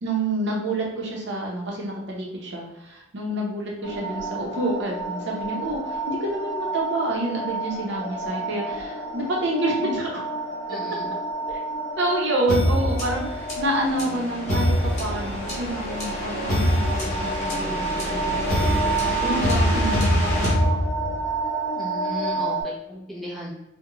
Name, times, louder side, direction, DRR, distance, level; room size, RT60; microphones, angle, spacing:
voice 1, 0.0-10.2 10.7-10.8 11.5-11.6 12.0-21.1, right 1 dB, 65° right, -2 dB, 0.6 m, -28 dB
sound 1, 3.8-22.6, right 2 dB, 60° left, 0.6 m, -30 dB
voice 2, 10.7-11.1 21.8-23.6, equal, ahead, -7 dB, 0.6 m, -35 dB
sound 2, 12.5-21.3, equal, 40° left, 0.9 m, -24 dB
2.4 x 2.1 x 2.9 m, 0.93 s
head